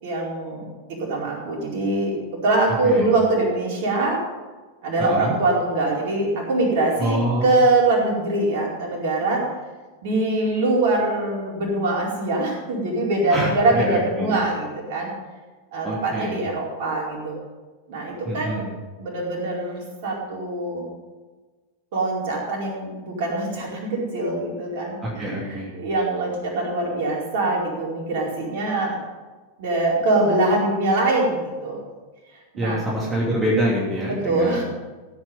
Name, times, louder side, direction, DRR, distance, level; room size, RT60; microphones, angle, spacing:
voice 1, 0.0-4.2 4.8-9.4 10.0-15.1 15.7-17.4 17.9-18.7 19.0-20.8 21.9-29.0 29.6-31.8 32.5-32.8 34.1-34.6, right 2 dB, 50° right, -2 dB, 4.6 m, -23 dB
voice 2, 5.0-5.3 7.0-7.5 13.3-14.4 15.8-16.4 18.2-18.7 25.0-25.7 32.6-34.6, right 1 dB, 15° right, -5 dB, 2.9 m, -25 dB
15.0 x 9.1 x 5.4 m, 1.3 s
figure-of-eight pair, 90°, 0 cm